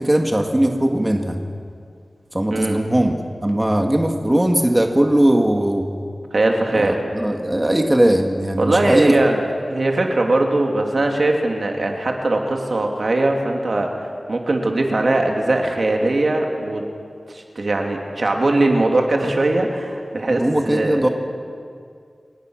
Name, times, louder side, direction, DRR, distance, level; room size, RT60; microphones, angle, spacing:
voice 1, 0.0-1.4 2.3-5.9 6.7-9.4 20.3-21.1, right 1 dB, 20° right, 3 dB, 1.9 m, -19 dB
voice 2, 6.3-7.0 8.6-9.4 9.7-13.9 14.3-16.9 17.3-21.1, right 2 dB, 60° right, 2 dB, 2.9 m, -20 dB
28.5 x 18.0 x 6.5 m, 2.2 s
wide cardioid pair, 60°, 0 cm